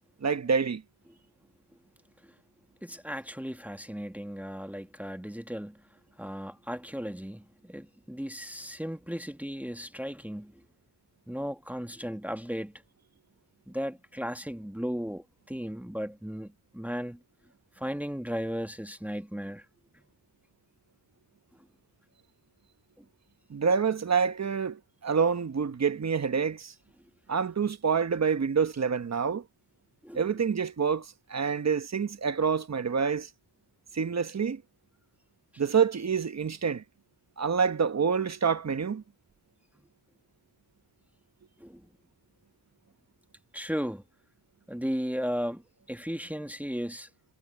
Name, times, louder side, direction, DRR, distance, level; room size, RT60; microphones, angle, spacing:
voice 1, 0.2-0.8 23.5-26.7 27.3-29.4 30.1-33.3 33.9-34.6 35.6-36.8 37.4-39.0, right 6 dB, 40° right, 1.2 m, -27 dB
voice 2, 2.8-5.8 6.2-10.5 11.3-12.7 13.7-17.2 17.8-19.6 30.0-30.3 41.6-41.8 43.5-44.0 44.7-45.6 45.9-47.1, equal, 5° right, 1.8 m, -35 dB
cardioid pair, 75°, 41 cm